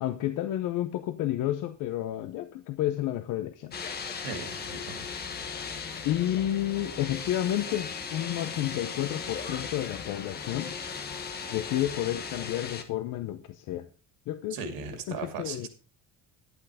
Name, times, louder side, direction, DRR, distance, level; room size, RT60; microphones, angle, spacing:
voice 1, 0.0-3.7 6.0-10.7 11.5-13.9 14.3-14.6 15.1-15.7, left 13 dB, 65° left, 0.8 m, -31 dB
sound 1, 3.7-12.8, left 5 dB, 30° left, 1.4 m, -37 dB
voice 2, 4.2-5.1 14.5-15.7, right 5 dB, 85° right, 2.6 m, -37 dB
11.5 x 8.1 x 4.9 m
cardioid pair, 170°, 34 cm